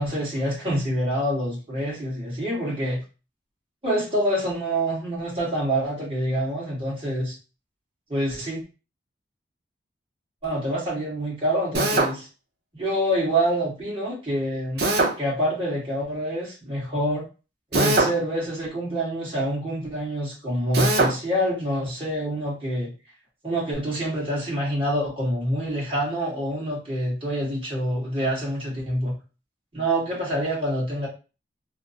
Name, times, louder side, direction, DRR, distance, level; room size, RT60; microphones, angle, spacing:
voice 1, 0.0-3.0 3.8-7.3 8.1-8.6 10.4-12.3 12.7-14.8 15.2-17.2 17.7-22.9 23.4-29.1 29.7-31.1, equal, 30° right, -6 dB, 1.5 m, -26 dB
Drill, 11.7-12.1 14.8-15.1 17.7-18.2 20.7-21.1, right 2 dB, 60° right, 0.6 m, -21 dB
3.2 x 2.0 x 2.7 m, 0.32 s
head